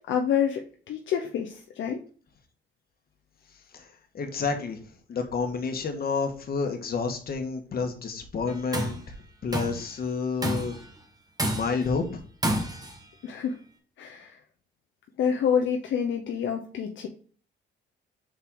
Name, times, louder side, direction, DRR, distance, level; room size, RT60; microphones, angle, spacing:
voice 1, 0.1-2.0 13.2-13.6 14.0-14.4 15.2-17.1, left 7 dB, 70° left, 2 dB, 0.8 m, -27 dB
voice 2, 3.7-4.8 5.1-9.0 9.4-10.8 11.5-12.2, left 4 dB, 50° left, 5 dB, 1.5 m, -29 dB
Tools, 8.5-9.0 9.5-9.9 10.4-10.9 11.4-11.9 12.4-13.0, right 1 dB, 20° right, 1.6 m, -29 dB
5.7 x 4.4 x 3.7 m, 0.42 s
cardioid pair, 90°, 20 cm